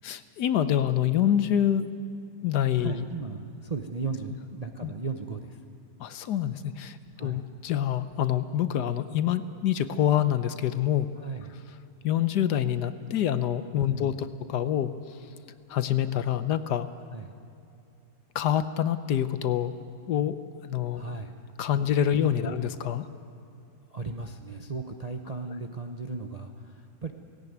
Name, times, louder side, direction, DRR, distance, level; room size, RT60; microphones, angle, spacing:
voice 1, 0.0-1.9 2.4-3.1 4.8-4.9 6.0-11.1 12.0-14.9 15.7-16.9 18.3-19.8 20.1-20.4 20.6-21.0 21.6-23.1, left 10 dB, 70° left, 12 dB, 1.3 m, -26 dB
voice 2, 2.8-5.6 7.2-7.4 11.2-11.6 13.9-14.2 17.1-17.3 20.9-21.3 22.2-22.5 23.9-27.1, right 4 dB, 35° right, 4 dB, 0.6 m, -36 dB
17.5 x 16.5 x 9.4 m, 2.6 s
omnidirectional pair, 1.9 m